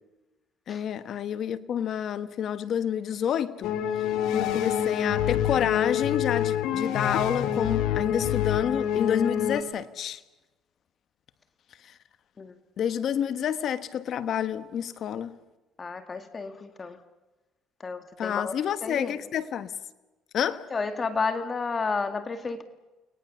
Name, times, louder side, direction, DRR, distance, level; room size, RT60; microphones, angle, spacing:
voice 1, 0.7-10.2 11.8-12.0 12.8-15.4 18.2-19.7 20.3-20.7, left 9 dB, 55° left, 1.2 m, -29 dB
sound 1, 3.6-9.6, left 9 dB, 80° left, 2.4 m, -27 dB
voice 2, 15.8-17.0 17.8-18.5 18.8-19.1 20.7-22.6, left 4 dB, 30° left, 2.1 m, -31 dB
30.0 x 21.0 x 7.0 m
cardioid pair, 105°, 0 cm